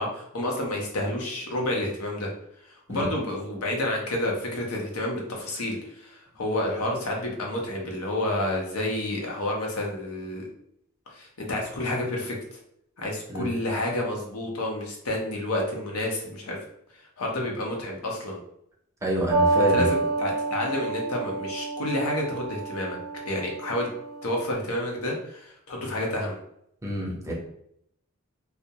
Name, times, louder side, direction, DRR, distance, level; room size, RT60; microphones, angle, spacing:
voice 1, 0.0-2.3 2.6-10.4 11.1-12.4 13.0-16.6 17.0-18.4 19.7-23.0 23.3-23.9 24.2-26.4, left 1 dB, 85° left, 0 dB, 0.6 m, -29 dB
voice 2, 19.0-20.0 26.8-27.3, equal, 15° right, -3 dB, 0.5 m, -27 dB
sound 1, 19.3-24.5, right 3 dB, 65° right, 0.5 m, -28 dB
2.3 x 2.0 x 2.7 m, 0.74 s
head